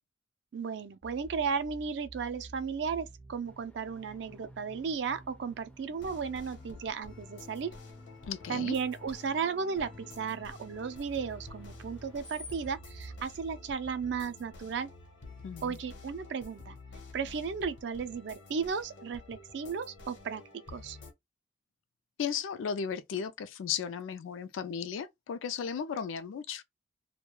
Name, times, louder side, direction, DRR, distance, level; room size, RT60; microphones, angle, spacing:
voice 1, 0.5-7.7 8.5-14.9 15.6-16.8 17.1-20.4 20.7-21.0, right 6 dB, 65° right, 0.3 m, -35 dB
sound 1, 1.0-16.6, right 3 dB, 50° right, 0.7 m, -53 dB
Screech, 3.4-12.8, left 2 dB, 5° left, 0.3 m, -58 dB
sound 2, 6.0-21.1, left 3 dB, 75° left, 0.8 m, -50 dB
voice 2, 8.3-8.8 15.4-15.8 22.2-26.6, left 7 dB, 90° left, 0.3 m, -35 dB
2.2 x 2.2 x 2.9 m
head